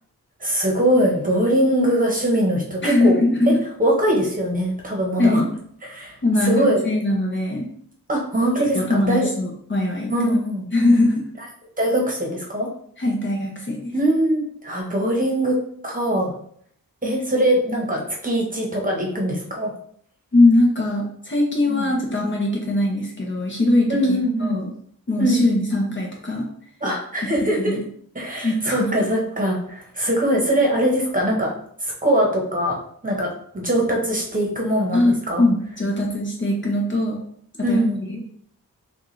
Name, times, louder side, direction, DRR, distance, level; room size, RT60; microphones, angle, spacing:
voice 1, 0.4-3.2 3.8-5.4 5.8-6.2 6.4-6.8 8.1-9.3 10.1-10.6 11.8-12.7 13.9-15.6 15.8-16.3 17.0-19.7 21.7-21.8 23.9-24.6 25.2-25.4 26.8-27.8 28.1-31.5 31.8-32.8 33.0-33.3 33.5-35.4 37.6-38.0, right 1 dB, 25° right, -1 dB, 1.1 m, -22 dB
voice 2, 2.8-3.6 5.2-5.5 6.2-7.7 8.6-10.4 10.7-11.2 13.0-13.9 20.3-24.7 25.1-26.5 27.6-27.8 28.4-29.0 34.9-37.2 37.7-38.2, left 2 dB, 35° left, -1 dB, 0.8 m, -21 dB
6.2 x 2.5 x 3.2 m, 0.64 s
wide cardioid pair, 165°, 36 cm